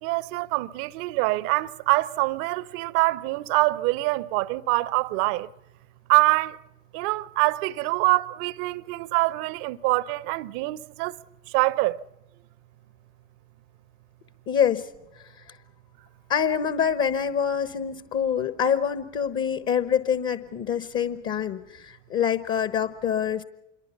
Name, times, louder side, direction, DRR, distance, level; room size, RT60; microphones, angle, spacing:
voice 1, 0.0-5.5 6.1-6.6 6.9-11.2 11.5-12.0, right 21 dB, 50° right, 0.8 m, -25 dB
voice 2, 14.5-14.8 16.3-23.4, left 8 dB, 35° left, 1.2 m, -25 dB
27.0 x 22.5 x 5.7 m
figure-of-eight pair, 70°, 37 cm